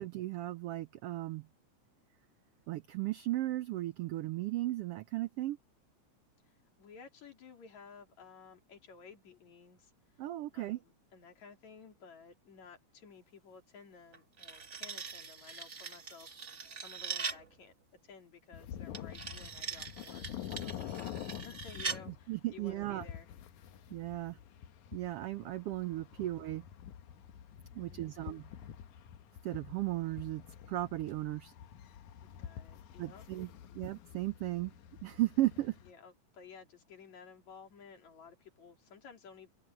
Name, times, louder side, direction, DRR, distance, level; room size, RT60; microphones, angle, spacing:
voice 1, 0.0-1.4 2.7-5.6 10.2-10.8 22.3-23.0 23.9-24.4 24.9-26.6 27.7-28.4 29.4-30.4 30.7-31.5 33.0-33.5 33.7-34.7 35.0-35.8, right 16 dB, 85° right, 1.3 m, -35 dB
voice 2, 6.5-10.2 10.5-17.7 18.0-23.3 23.6-23.7 26.1-26.2 27.7-28.3 32.4-33.8 35.9-39.5, left 5 dB, 70° left, 4.9 m, -55 dB
sound 1, 14.1-17.5 18.9-22.0, right 5 dB, 30° right, 1.6 m, -42 dB
sound 2, 18.5-35.9, left 10 dB, 85° left, 2.6 m, -48 dB
open air
omnidirectional pair, 3.3 m